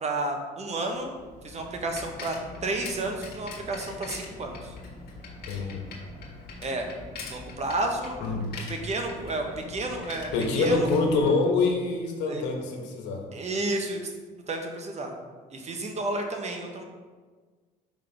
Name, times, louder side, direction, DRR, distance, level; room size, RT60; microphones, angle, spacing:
voice 1, 0.0-1.1 1.4-4.7 6.6-6.9 7.3-8.2 8.7-10.3 10.6-10.9 11.2-11.3 12.3-12.4 13.3-14.1 14.5-15.1 15.5-16.8, right 2 dB, 40° right, 3 dB, 1.1 m, -31 dB
Bicycle, 0.9-11.8, left 3 dB, 60° left, 1.5 m, -43 dB
voice 2, 5.5-5.8 8.2-8.5 10.3-13.2, left 3 dB, 80° left, 1 dB, 1.2 m, -25 dB
5.3 x 3.8 x 5.3 m, 1.4 s
supercardioid pair, 80°, 18 cm